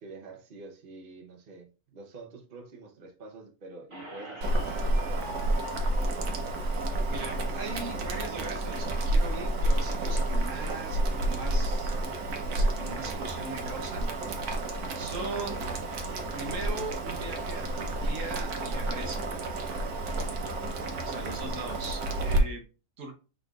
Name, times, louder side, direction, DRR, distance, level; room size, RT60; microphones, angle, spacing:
voice 1, 0.0-5.5, right 3 dB, 45° right, 2 dB, 0.9 m, -47 dB
Squeak, 3.9-8.9, left 1 dB, 20° right, 1.5 m, -47 dB
Boiling, 4.4-22.4, right 1 dB, 80° right, 1.4 m, -30 dB
voice 2, 7.1-11.9 12.4-14.1 14.9-15.6 16.3-19.2 21.0-22.6 23.0-23.1, right 3 dB, 60° right, 2 dB, 1.2 m, -40 dB
5.8 x 3.7 x 2.3 m, 0.35 s
omnidirectional pair, 1.6 m